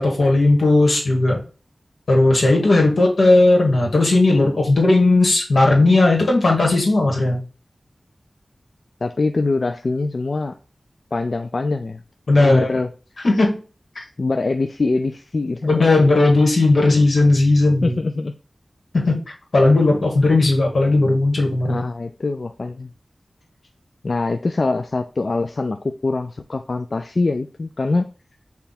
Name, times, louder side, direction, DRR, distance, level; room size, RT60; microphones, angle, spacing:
voice 1, 0.0-1.4 2.1-7.4 12.3-12.7 13.2-13.5 13.9-14.0 15.6-18.0 18.9-19.2 19.5-21.8, left 2 dB, 85° left, 0 dB, 1.5 m, -16 dB
voice 2, 9.0-10.5 11.1-12.0 12.4-12.9 14.2-15.8 17.8-18.3 21.7-22.9 24.0-28.1, left 3 dB, 60° left, 6 dB, 0.3 m, -23 dB
5.5 x 2.3 x 4.1 m, 0.35 s
wide cardioid pair, 65°, 0 cm